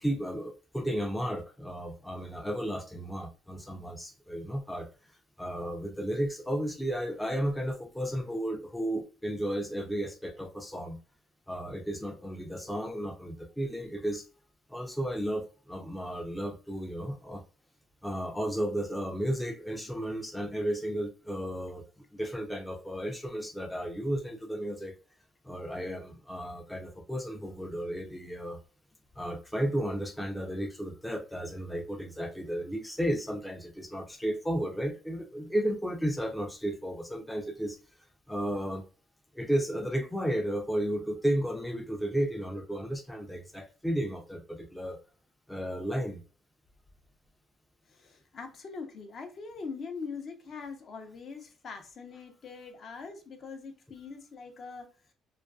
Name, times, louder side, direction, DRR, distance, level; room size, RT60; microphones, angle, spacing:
voice 1, 0.0-4.9 5.4-11.0 11.5-14.3 14.7-17.4 18.0-21.8 22.1-25.0 25.4-28.6 29.2-37.8 38.3-38.8 39.3-45.0 45.5-46.2, equal, 5° left, 0.4 m, -33 dB
voice 2, 47.9-54.9, left 5 dB, 50° left, 0.6 m, -42 dB
2.4 x 2.3 x 2.3 m
cardioid pair, 100°, 0 cm